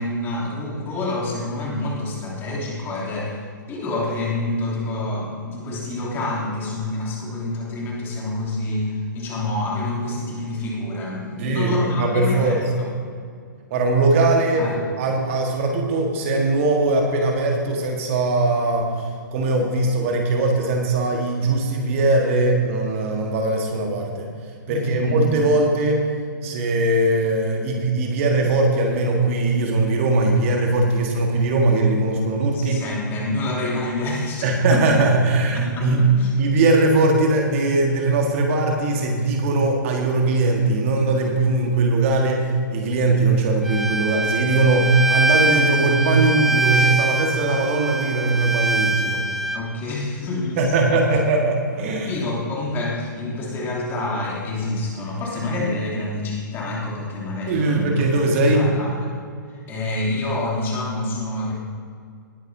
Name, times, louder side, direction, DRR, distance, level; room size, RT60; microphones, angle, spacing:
voice 1, 0.0-12.9 14.6-14.8 24.7-25.5 32.5-34.8 35.5-36.3 49.5-51.0 51.8-58.0 58.4-59.2 59.5-61.5, left 2 dB, 20° left, -4 dB, 3.0 m, -27 dB
voice 2, 11.4-12.6 13.7-14.6 15.0-18.9 19.3-24.3 24.7-26.0 26.4-32.8 34.4-36.0 36.4-49.2 50.6-52.1 57.5-58.7, right 2 dB, 40° right, 1 dB, 1.7 m, -20 dB
Bowed string instrument, 43.6-49.6, right 2 dB, ahead, 0.4 m, -23 dB
19.5 x 9.7 x 2.8 m, 2.2 s
figure-of-eight pair, 120°, 11 cm